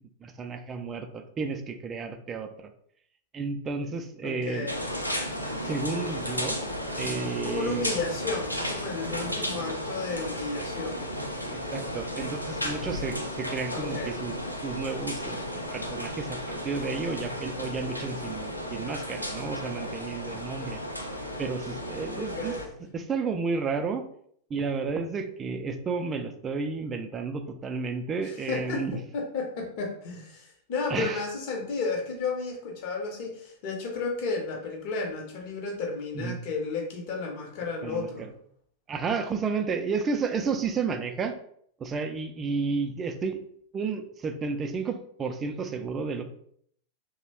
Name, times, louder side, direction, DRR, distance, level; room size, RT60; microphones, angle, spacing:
voice 1, 0.2-2.5 3.3-4.7 5.7-6.6 7.0-7.8 11.7-14.3 14.6-15.4 15.7-20.8 21.4-22.5 22.9-24.0 24.5-29.0 30.9-31.2 36.1-36.4 37.8-38.1 38.9-41.4 41.8-43.4 43.7-46.2, right 4 dB, 25° right, 6 dB, 0.3 m, -32 dB
voice 2, 4.2-4.8 7.4-11.0 13.7-14.2 22.1-22.8 28.2-38.3, left 4 dB, 45° left, 1 dB, 0.7 m, -33 dB
sound 1, 4.7-22.7, equal, 90° left, 0.4 m, -34 dB
3.0 x 2.0 x 2.8 m, 0.65 s
figure-of-eight pair, 90°, 0 cm